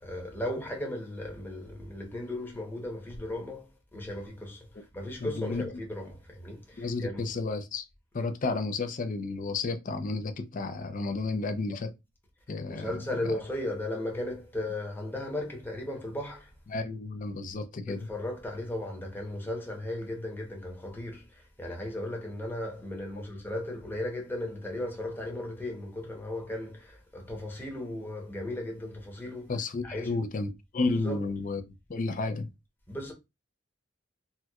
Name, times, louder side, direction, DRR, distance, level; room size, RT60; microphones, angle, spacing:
voice 1, 0.0-4.7 4.9-7.2 12.7-16.5 17.9-29.5 29.8-30.1 31.0-31.2 32.9-33.1, left 1 dB, 10° left, 0.9 m, -36 dB
voice 2, 5.2-5.7 6.8-7.9 8.1-11.9 12.5-13.4 16.7-18.1 29.5-32.5, left 3 dB, 45° left, 0.5 m, -32 dB
4.3 x 2.3 x 2.3 m
head